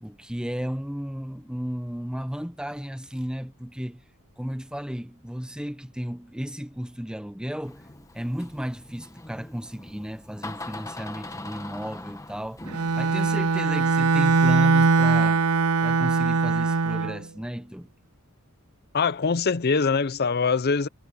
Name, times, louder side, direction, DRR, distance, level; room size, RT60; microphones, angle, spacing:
voice 1, 0.0-4.0 4.4-7.8 8.1-12.6 12.9-15.4 15.8-17.9, equal, 5° right, 0.9 m, -34 dB
Door, 7.6-15.3, left 2 dB, 15° left, 1.4 m, -43 dB
Bowed string instrument, 12.7-17.2, right 4 dB, 85° right, 0.7 m, -21 dB
voice 2, 18.9-20.9, left 5 dB, 45° left, 0.6 m, -23 dB
head